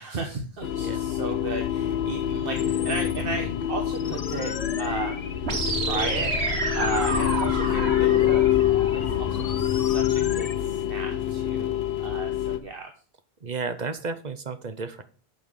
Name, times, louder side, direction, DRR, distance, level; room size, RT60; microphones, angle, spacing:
voice 1, 0.0-4.5 4.8-12.9, right 4 dB, 65° right, 3 dB, 1.2 m, -35 dB
sound 1, 0.6-12.6, left 11 dB, 80° left, 1.1 m, -26 dB
sound 2, 2.6-10.5, left 6 dB, 45° left, 0.6 m, -35 dB
sound 3, 5.4-9.4, right 2 dB, 85° right, 1.8 m, -29 dB
voice 2, 13.4-15.0, right 4 dB, 45° right, 10 dB, 0.9 m, -32 dB
7.0 x 5.5 x 6.3 m, 0.39 s
omnidirectional pair, 1.0 m